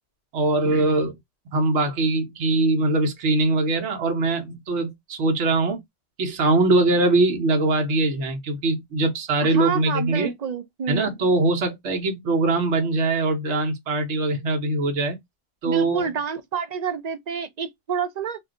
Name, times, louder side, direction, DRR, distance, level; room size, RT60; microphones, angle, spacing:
voice 1, 0.3-1.1 1.5-5.8 6.2-10.3 10.9-15.2 15.6-16.1, right 2 dB, 80° right, 1.1 m, -22 dB
voice 2, 9.4-11.2 15.6-18.4, right 6 dB, 55° right, 0.4 m, -28 dB
2.6 x 2.2 x 3.6 m
omnidirectional pair, 1.1 m